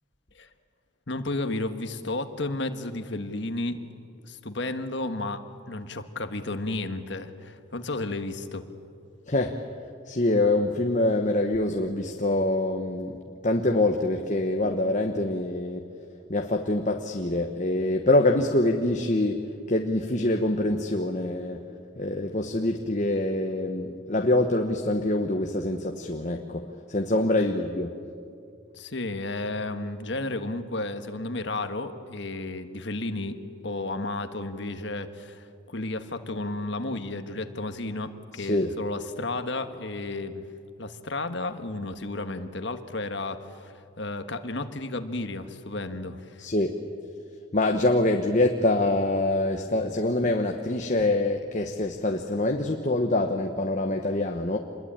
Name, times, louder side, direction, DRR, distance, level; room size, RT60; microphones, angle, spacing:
voice 1, 1.1-3.8 4.2-8.6 28.7-33.4 33.6-40.4 40.8-46.4, left 2 dB, 60° left, 8 dB, 1.5 m, -33 dB
voice 2, 9.3-9.6 10.1-15.9 16.3-21.6 22.0-28.0 38.3-38.7 46.4-46.8 47.5-54.6, left 2 dB, 35° left, 4 dB, 1.2 m, -25 dB
27.0 x 21.5 x 8.9 m, 2.4 s
head